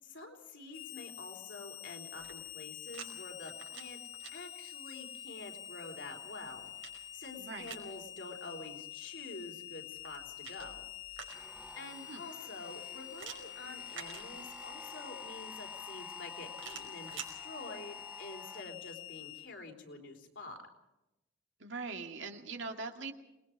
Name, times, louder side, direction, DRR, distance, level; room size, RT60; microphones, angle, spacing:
voice 1, 0.0-4.0 4.3-6.7 7.1-10.8 11.8-20.7, left 3 dB, 65° left, 3 dB, 4.2 m, -48 dB
Harmonica, 0.7-19.5, left 13 dB, 85° left, 2.2 m, -47 dB
sound 1, 2.0-3.1 3.4-4.3 6.0-7.9 9.9-11.7 13.2-14.7 16.5-17.3, right 8 dB, 85° right, 5.3 m, -49 dB
voice 2, 7.4-7.8 12.1-12.2 21.6-23.1, right 4 dB, 70° right, 4 dB, 2.3 m, -42 dB
sound 2, 11.3-18.6, right 1 dB, 5° right, 0.6 m, -52 dB
28.5 x 21.0 x 4.8 m, 0.92 s
head